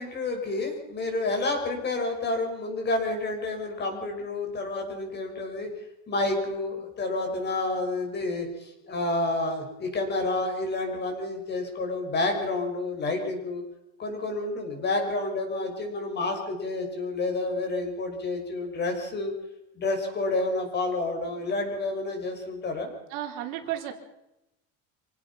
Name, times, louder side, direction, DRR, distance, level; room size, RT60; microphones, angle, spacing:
voice 1, 0.0-5.7 6.1-13.6 14.0-19.3 19.7-22.9, left 2 dB, 30° left, 4 dB, 6.3 m, -29 dB
voice 2, 23.1-23.9, right 12 dB, 80° right, 4 dB, 3.9 m, -33 dB
27.0 x 17.5 x 5.8 m, 0.88 s
cardioid pair, 160°, 35 cm